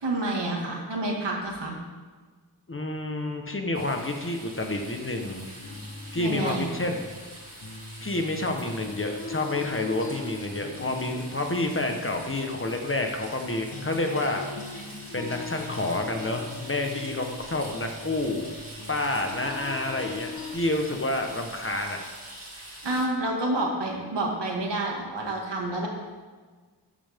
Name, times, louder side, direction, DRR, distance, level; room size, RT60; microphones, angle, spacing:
voice 1, 0.0-1.8 6.2-6.7 22.5-25.9, right 2 dB, 75° right, -1 dB, 2.2 m, -29 dB
voice 2, 2.7-5.5 6.1-7.1 8.0-14.4 15.1-18.5 18.9-22.0, left 2 dB, 30° left, 3 dB, 1.2 m, -29 dB
sound 1, 3.7-23.1, right 1 dB, 30° right, 2.7 m, -44 dB
sound 2, 5.6-13.4 13.7-20.6, left 4 dB, 55° left, 1.3 m, -41 dB
13.0 x 9.0 x 3.6 m, 1.4 s
wide cardioid pair, 105°, 43 cm